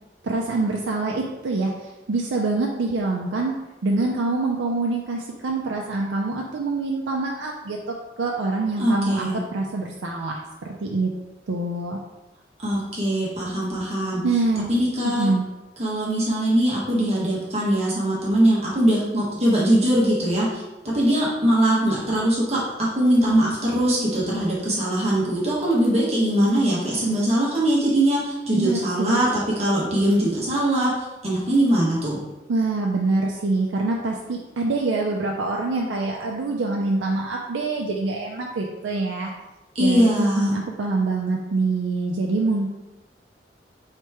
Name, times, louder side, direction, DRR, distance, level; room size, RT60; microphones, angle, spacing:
voice 1, 0.2-7.8 8.2-11.1 11.5-12.0 14.2-14.7 15.0-15.4 28.5-29.2 32.5-39.3 39.8-42.7, right 3 dB, 85° right, 0 dB, 0.4 m, -25 dB
voice 2, 8.8-9.4 12.6-14.2 14.7-15.3 15.8-30.9 31.2-32.2 39.7-40.6, right 1 dB, 35° right, -6 dB, 1.0 m, -21 dB
3.3 x 3.0 x 4.6 m, 1.0 s
head